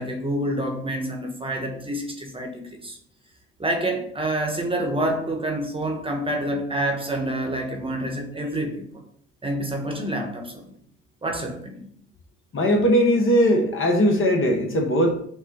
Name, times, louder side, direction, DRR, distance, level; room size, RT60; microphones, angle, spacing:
voice 1, 0.0-3.0 3.6-9.0 9.4-10.7 11.2-11.9, right 1 dB, 15° right, 2 dB, 1.1 m, -28 dB
voice 2, 12.5-15.1, equal, 40° left, 2 dB, 1.1 m, -19 dB
5.7 x 2.2 x 4.0 m, 0.63 s
hypercardioid pair, 55°, 31 cm